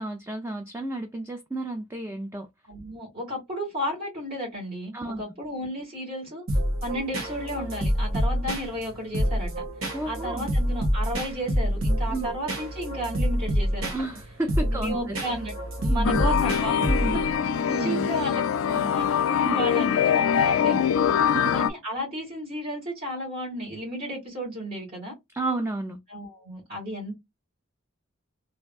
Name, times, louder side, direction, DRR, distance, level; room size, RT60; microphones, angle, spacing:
voice 1, 0.0-2.5 4.9-5.2 9.9-10.5 12.1-12.3 13.9-15.2 15.9-16.3 16.8-17.2 17.7-18.1 19.4-19.5 21.3-21.5 25.3-26.0, right 2 dB, 10° right, 0.4 m, -31 dB
voice 2, 2.7-6.4 6.8-9.5 10.0-13.9 14.6-15.5 15.8-16.8 17.3-19.1 19.5-21.2 21.5-25.1 26.1-27.2, equal, 50° right, 2.1 m, -33 dB
sound 1, 6.5-17.3, equal, 80° right, 1.4 m, -27 dB
sound 2, 16.0-21.7, left 8 dB, 85° left, 0.3 m, -23 dB
3.4 x 2.6 x 2.3 m
head